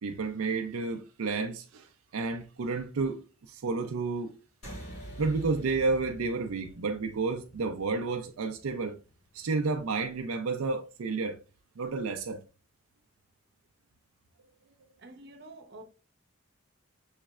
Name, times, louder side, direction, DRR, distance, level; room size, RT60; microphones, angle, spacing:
voice 1, 0.0-1.9 2.1-4.4 5.2-9.0 9.3-11.4 11.8-12.4, right 4 dB, 90° right, 0.5 m, -31 dB
sound 1, 4.6-9.4, right 1 dB, 50° left, 1.7 m, -47 dB
voice 2, 15.0-15.8, right 2 dB, 50° right, 0.9 m, -48 dB
6.4 x 3.1 x 2.4 m
head